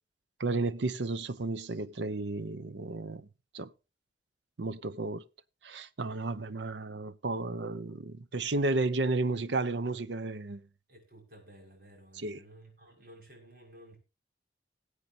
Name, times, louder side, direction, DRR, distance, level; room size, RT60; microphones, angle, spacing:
voice 1, 0.4-3.3 3.5-3.7 4.6-5.2 5.6-10.6 12.2-12.4, right 2 dB, 80° right, 0.7 m, -33 dB
voice 2, 10.9-14.0, right 1 dB, 55° right, 5.7 m, -54 dB
20.0 x 8.3 x 2.7 m
head